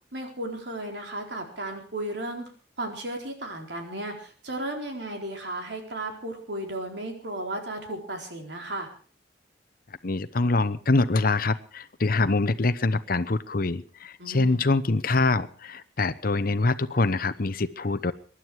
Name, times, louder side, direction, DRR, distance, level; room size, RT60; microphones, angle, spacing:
voice 1, 0.1-2.5 2.8-8.9 14.2-14.6, right 1 dB, 70° right, 3 dB, 4.1 m, -34 dB
voice 2, 10.0-18.1, left 3 dB, 55° left, 14 dB, 0.9 m, -24 dB
23.5 x 11.5 x 4.7 m, 0.39 s
head